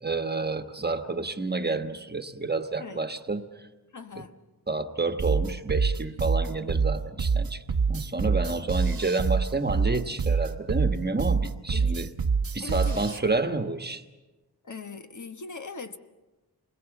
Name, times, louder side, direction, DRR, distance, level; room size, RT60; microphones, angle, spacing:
voice 1, 0.0-3.4 4.7-12.1 12.5-14.0, right 3 dB, 25° right, 7 dB, 1.3 m, -29 dB
voice 2, 3.9-4.4 11.7-12.0 12.6-13.1 14.6-16.0, left 4 dB, 50° left, 7 dB, 1.3 m, -40 dB
sound 1, 5.2-13.2, right 5 dB, 65° right, 1.1 m, -25 dB
27.5 x 21.5 x 7.2 m, 1.2 s
wide cardioid pair, 100°, 38 cm